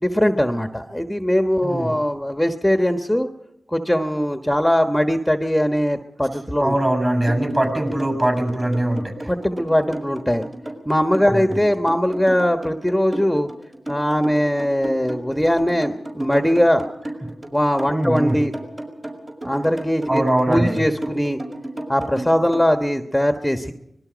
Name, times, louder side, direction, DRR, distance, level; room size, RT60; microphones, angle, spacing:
voice 1, 0.0-3.3 3.7-7.0 9.3-10.5 10.9-13.5 13.9-16.9 17.5-18.5 19.4-21.4 21.9-23.7, equal, 5° left, 5 dB, 1.3 m, -20 dB
voice 2, 6.6-9.3 11.3-11.4 17.2-17.3 17.9-18.4 20.1-20.8, right 1 dB, 30° right, 8 dB, 7.2 m, -21 dB
sound 1, 7.3-22.7, right 1 dB, 45° right, 6.2 m, -33 dB
25.0 x 21.0 x 5.2 m, 0.80 s
cardioid pair, 50°, 0 cm